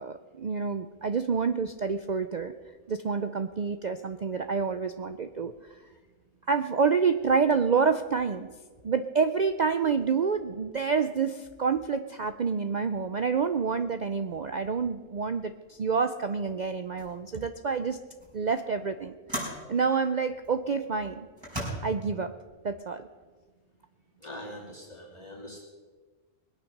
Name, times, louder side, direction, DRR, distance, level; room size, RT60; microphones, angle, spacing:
voice 1, 0.0-2.5 2.9-5.5 6.5-8.5 8.8-18.0 18.3-19.2 19.7-21.3 21.8-22.3 22.6-23.1, right 5 dB, 50° right, 9 dB, 0.5 m, -28 dB
sound 1, 16.4-16.5 17.0-17.2 18.2-18.3 19.3-19.6 20.4-20.6 21.4-21.7, equal, 20° right, 5.8 m, -35 dB
voice 2, 24.2-25.6, left 1 dB, 25° left, -3 dB, 2.9 m, -43 dB
21.0 x 9.1 x 6.6 m, 1.4 s
omnidirectional pair, 1.3 m